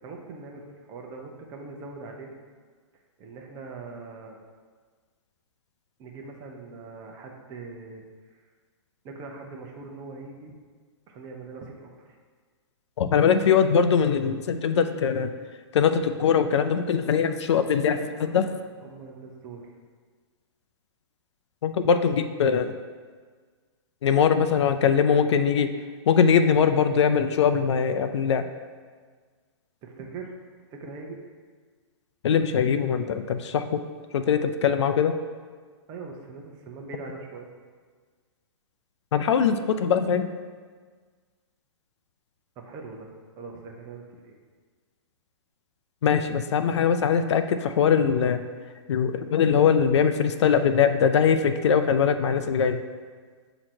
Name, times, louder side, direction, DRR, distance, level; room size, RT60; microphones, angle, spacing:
voice 1, 0.0-2.3 3.2-4.4 6.0-8.0 9.0-10.5 11.1-12.1 17.9-18.5 18.8-19.8 24.7-25.3 29.8-30.3 30.7-31.2 35.9-37.5 42.6-44.4, right 4 dB, 25° right, 1 dB, 0.7 m, -42 dB
voice 2, 13.0-15.3 15.7-18.5 21.6-22.8 24.0-25.7 26.1-28.4 32.2-33.8 34.1-35.2 39.1-40.4 46.0-48.5 48.9-52.8, left 7 dB, 70° left, 10 dB, 0.4 m, -22 dB
7.5 x 2.9 x 4.3 m, 1.5 s
hypercardioid pair, 145°, 15 cm